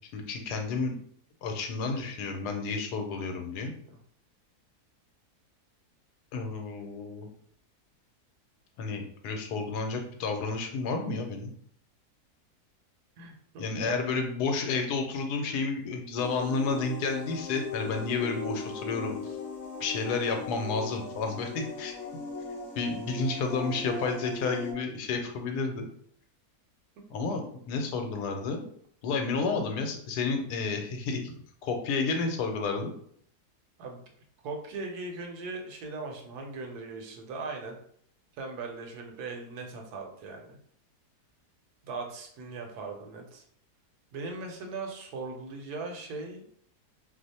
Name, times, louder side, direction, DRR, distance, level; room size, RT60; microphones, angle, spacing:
voice 1, 0.1-0.9 1.4-3.7 6.3-7.3 8.8-11.5 13.6-19.4 19.8-21.9 22.8-25.8 27.1-28.6 29.0-31.3 31.6-32.9, left 4 dB, 80° left, 4 dB, 1.1 m, -31 dB
voice 2, 13.2-14.0 33.8-34.0 34.4-37.8 38.4-40.6 41.8-43.4 44.1-46.4, right 3 dB, 75° right, 2 dB, 1.1 m, -39 dB
sound 1, 16.2-24.7, left 3 dB, 60° left, 0.9 m, -38 dB
2.8 x 2.0 x 4.0 m, 0.63 s
omnidirectional pair, 1.7 m